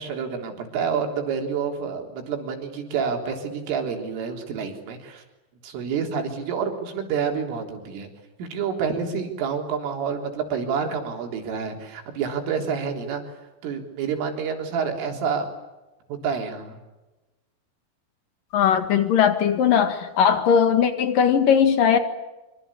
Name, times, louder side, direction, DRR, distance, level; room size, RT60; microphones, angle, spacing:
voice 1, 0.0-5.2 5.6-8.1 8.4-13.2 13.6-15.5 16.1-16.8, right 6 dB, 80° right, 3 dB, 6.2 m, -28 dB
voice 2, 18.5-22.0, left 8 dB, 55° left, 9 dB, 2.9 m, -19 dB
26.5 x 25.0 x 8.5 m, 1.1 s
omnidirectional pair, 5.6 m